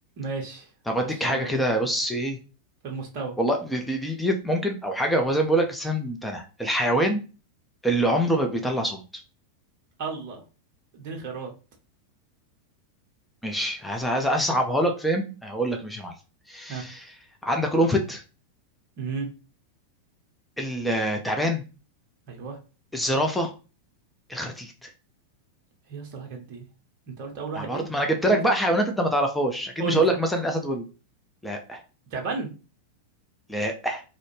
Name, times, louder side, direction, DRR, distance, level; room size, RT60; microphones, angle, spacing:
voice 1, 0.2-0.7 1.0-1.6 2.8-3.4 10.0-10.4 10.9-11.5 16.7-16.9 19.0-19.3 22.3-22.6 25.9-26.7 27.1-27.9 28.3-28.4 29.8-30.0 32.1-32.5, right 4 dB, 45° right, 2 dB, 0.6 m, -33 dB
voice 2, 0.9-2.4 3.4-7.2 7.8-9.2 13.4-16.1 16.5-17.0 17.4-18.2 20.6-21.6 22.9-23.5 24.3-24.9 27.6-30.9 31.4-31.8 33.5-34.0, right 1 dB, 5° left, 2 dB, 0.4 m, -25 dB
2.5 x 2.0 x 3.0 m, 0.33 s
figure-of-eight pair, 90°, 0 cm